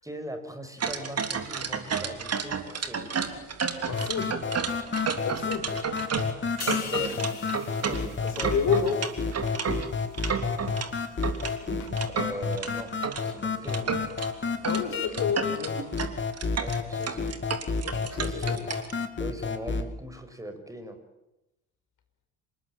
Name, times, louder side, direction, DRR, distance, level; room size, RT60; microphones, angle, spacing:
voice 1, 0.0-3.1 6.6-7.4 7.8-8.5 12.0-14.0 16.6-17.3 18.2-18.6 19.2-21.0, right 1 dB, 5° right, 7 dB, 6.1 m, -40 dB
sound 1, 0.8-10.9 11.2-13.2 13.6-14.3 14.6-14.8 15.1-18.9, right 6 dB, 35° right, 3.4 m, -31 dB
voice 2, 3.9-4.4 5.2-5.7 6.5-6.7 8.5-9.1 11.8-11.9 14.6-15.8 17.8-18.6, left 6 dB, 45° left, 7 dB, 5.2 m, -30 dB
sound 2, 3.9-19.9, left 5 dB, 25° left, 2.7 m, -31 dB
sound 3, 6.6-10.1 10.5-10.7, left 7 dB, 80° left, 3.0 m, -43 dB
27.0 x 20.5 x 9.0 m, 0.91 s
figure-of-eight pair, 55°, 44 cm